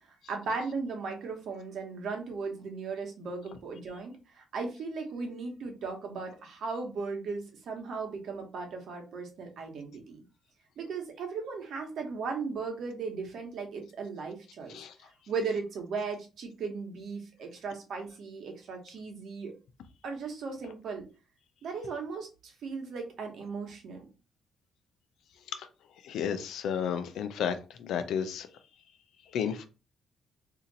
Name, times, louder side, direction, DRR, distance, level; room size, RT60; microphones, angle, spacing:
voice 1, 0.1-10.2 10.8-14.8 15.3-19.5 20.0-21.0 21.6-24.0, right 4 dB, 70° right, 2 dB, 1.2 m, -37 dB
voice 2, 26.0-28.5 29.3-29.7, left 8 dB, 80° left, 9 dB, 0.5 m, -32 dB
2.8 x 2.5 x 4.0 m, 0.32 s
cardioid pair, 90°, 0 cm